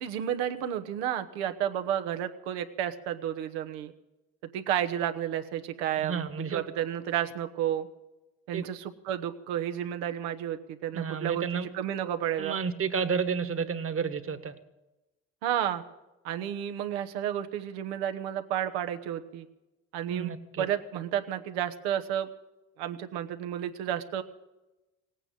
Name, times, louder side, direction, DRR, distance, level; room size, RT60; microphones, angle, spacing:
voice 1, 0.0-3.9 4.5-6.2 6.5-7.9 8.5-12.6 15.4-15.8 16.2-19.5 19.9-22.3 22.8-24.2, right 10 dB, 85° right, 8 dB, 1.1 m, -31 dB
voice 2, 6.0-6.6 8.5-8.7 10.9-11.7 12.4-14.5 20.1-20.6, right 6 dB, 45° right, 11 dB, 1.5 m, -31 dB
18.0 x 9.0 x 8.9 m, 1.0 s
hypercardioid pair, 60°, 32 cm